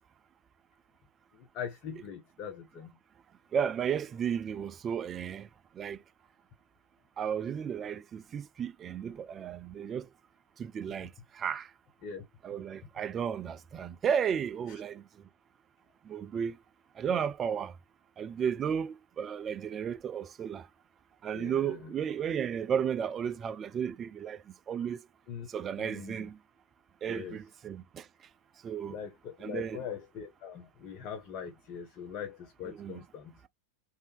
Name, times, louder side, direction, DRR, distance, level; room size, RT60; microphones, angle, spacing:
voice 1, 1.3-3.0 12.0-12.2 21.3-21.8 25.3-26.3 27.1-27.4 28.9-33.3, left 7 dB, 40° left, 0.6 m, -42 dB
voice 2, 3.5-5.5 5.8-6.0 7.2-10.1 10.6-11.1 11.4-11.7 12.4-15.0 16.1-16.6 17.0-17.7 18.2-20.6 21.2-24.4 24.7-25.0 25.5-26.4 27.0-28.0 28.6-29.0 29.4-29.8 32.7-32.9, right 8 dB, 25° right, 0.4 m, -33 dB
3.2 x 2.6 x 3.0 m
figure-of-eight pair, 90°, 0 cm